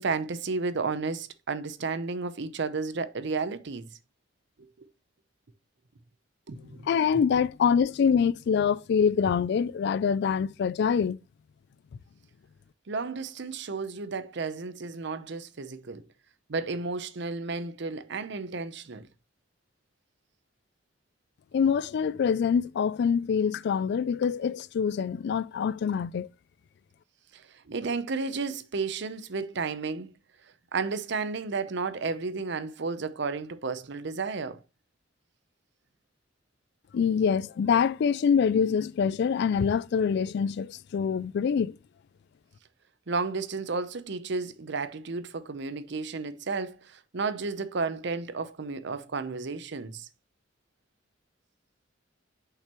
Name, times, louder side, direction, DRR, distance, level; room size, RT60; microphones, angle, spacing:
voice 1, 0.0-3.9 4.8-4.9 6.5-6.9 12.9-16.0 16.5-19.1 27.3-30.1 30.7-34.6 43.1-50.1, right 4 dB, 65° right, 0.7 m, -32 dB
voice 2, 6.8-11.2 21.5-26.3 36.9-41.8, left 6 dB, 60° left, 0.3 m, -25 dB
6.8 x 5.7 x 3.0 m
head